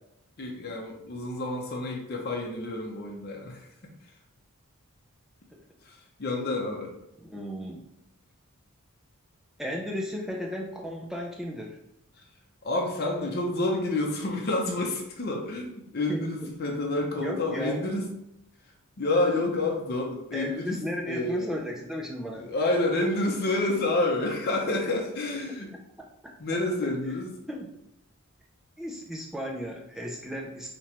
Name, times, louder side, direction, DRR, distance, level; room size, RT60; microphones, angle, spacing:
voice 1, 0.4-3.9 5.8-6.9 12.6-18.1 19.0-21.6 22.4-25.7 26.4-27.4, left 2 dB, 45° left, 0 dB, 0.6 m, -29 dB
voice 2, 7.2-7.8 9.6-11.8 16.1-16.3 17.2-17.8 20.3-22.5 27.5-27.7 28.8-30.7, equal, ahead, -1 dB, 0.4 m, -34 dB
4.7 x 2.9 x 2.8 m, 0.83 s
head